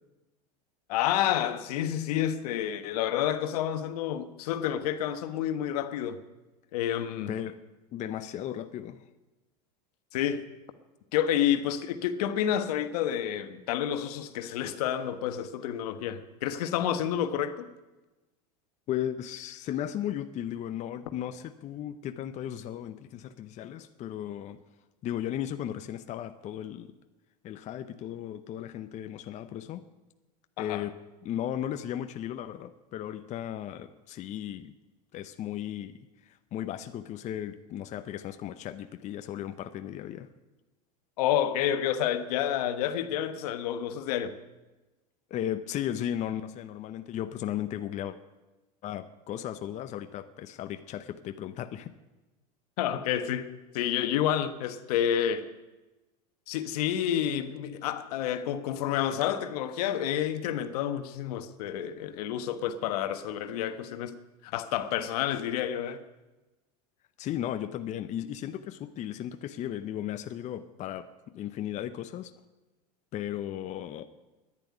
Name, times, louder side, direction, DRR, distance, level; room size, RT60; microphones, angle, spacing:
voice 1, 0.9-6.2 6.7-7.3 10.1-10.4 11.1-17.7 30.6-30.8 41.2-44.4 52.8-53.5 53.7-55.5 56.5-64.1 64.4-66.0, left 10 dB, 75° left, 1.2 m, -29 dB
voice 2, 7.9-9.1 18.9-24.6 25.0-27.0 27.4-29.8 30.6-30.9 31.2-34.8 35.1-40.3 45.3-48.2 48.8-51.9 67.2-72.3 73.1-74.0, left 11 dB, 35° left, 0.7 m, -36 dB
10.5 x 10.5 x 9.6 m
supercardioid pair, 125°, 20 cm